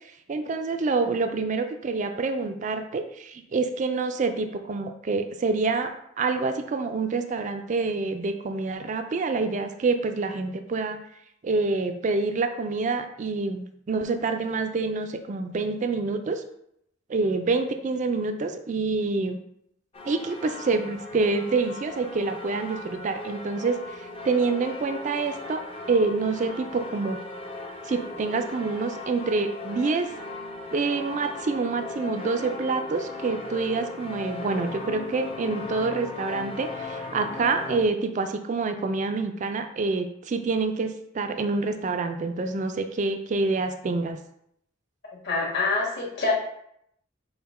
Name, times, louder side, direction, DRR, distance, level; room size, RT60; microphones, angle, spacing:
voice 1, 0.3-5.9 6.2-11.0 11.4-16.4 17.1-19.4 20.1-27.2 27.8-30.1 30.7-44.2, right 3 dB, 35° right, 7 dB, 0.3 m, -27 dB
sound 1, 19.9-37.9, left 2 dB, 30° left, 0.5 m, -38 dB
voice 2, 45.2-46.3, left 3 dB, 60° left, -3 dB, 1.5 m, -25 dB
5.6 x 2.1 x 4.1 m, 0.74 s
head